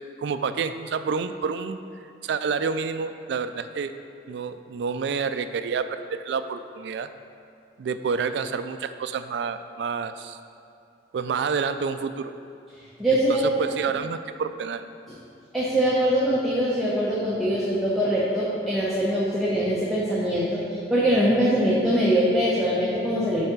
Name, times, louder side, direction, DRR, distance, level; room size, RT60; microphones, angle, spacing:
voice 1, 0.2-1.8 2.2-3.9 4.3-7.1 7.8-10.4 11.1-12.3 13.1-14.9, right 5 dB, 70° right, 10 dB, 0.3 m, -29 dB
voice 2, 13.0-13.4 15.5-20.6 20.9-23.4, equal, ahead, -8 dB, 0.8 m, -22 dB
5.5 x 4.8 x 5.9 m, 2.7 s
head